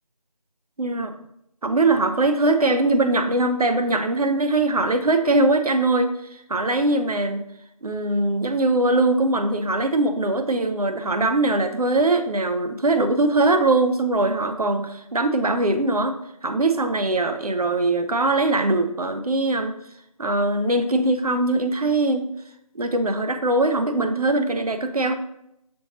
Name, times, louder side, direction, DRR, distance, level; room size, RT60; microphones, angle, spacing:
voice 1, 0.8-1.1 1.6-6.1 6.5-7.4 7.8-16.2 16.4-19.7 20.2-22.3 22.8-25.1, right 2 dB, 75° right, 8 dB, 0.6 m, -21 dB
6.2 x 2.9 x 3.0 m, 0.78 s
figure-of-eight pair, 180°, 19 cm